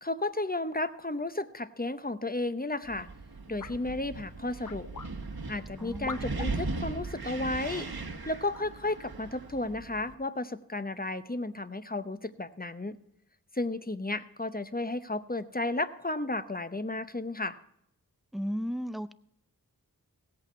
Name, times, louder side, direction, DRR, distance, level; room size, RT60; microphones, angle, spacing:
voice 1, 0.0-3.1 3.5-4.9 5.5-7.9 8.3-13.0 13.5-17.6, left 2 dB, 25° left, 0.8 m, -33 dB
Wind, 2.8-10.1, right 3 dB, 75° right, 1.3 m, -38 dB
sound 1, 3.6-3.8 4.6-5.1 6.1-6.5 7.7-7.8 8.5-8.7, left 6 dB, 55° left, 0.7 m, -41 dB
voice 2, 5.8-6.3 18.3-19.1, equal, ahead, 0.5 m, -35 dB
16.5 x 8.4 x 4.4 m
wide cardioid pair, 45°, 38 cm